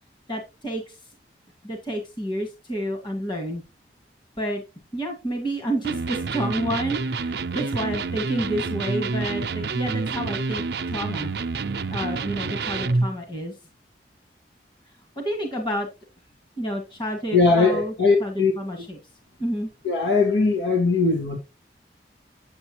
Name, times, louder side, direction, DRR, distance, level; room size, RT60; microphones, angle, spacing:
voice 1, 0.3-1.0 1.6-3.6 4.4-4.6 4.9-11.3 11.9-13.5 15.1-15.9 16.6-17.9 18.2-18.3 18.6-19.0 19.4-19.7, equal, 25° left, 1.8 m, -29 dB
Electric guitar, 5.8-13.1, right 4 dB, 65° right, 0.6 m, -28 dB
voice 2, 17.3-18.5 18.8-18.9 19.8-21.4, left 4 dB, 85° left, 1.7 m, -20 dB
9.1 x 7.9 x 3.0 m
head